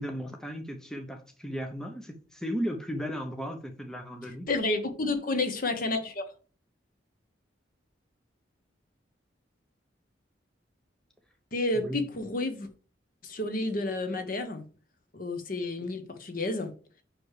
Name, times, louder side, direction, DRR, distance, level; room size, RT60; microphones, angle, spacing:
voice 1, 0.0-4.5 11.7-12.0, equal, 5° left, 0.7 m, -35 dB
voice 2, 4.5-6.2 11.5-12.7 13.2-14.6 15.1-16.7, left 2 dB, 45° left, 1.0 m, -30 dB
6.1 x 4.9 x 4.8 m
head